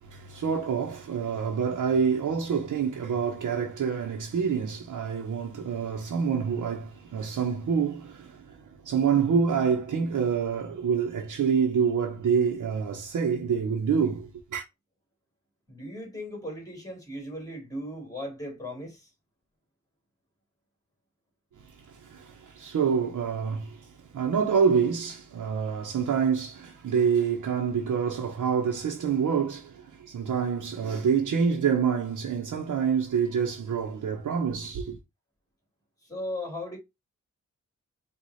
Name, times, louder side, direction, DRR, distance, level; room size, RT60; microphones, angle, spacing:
voice 1, 0.0-14.6 21.6-35.0, right 6 dB, 75° right, 0.9 m, -27 dB
voice 2, 15.7-19.1 36.0-36.8, left 1 dB, 10° left, 2.9 m, -37 dB
4.8 x 2.5 x 4.1 m
wide cardioid pair, 95°, 31 cm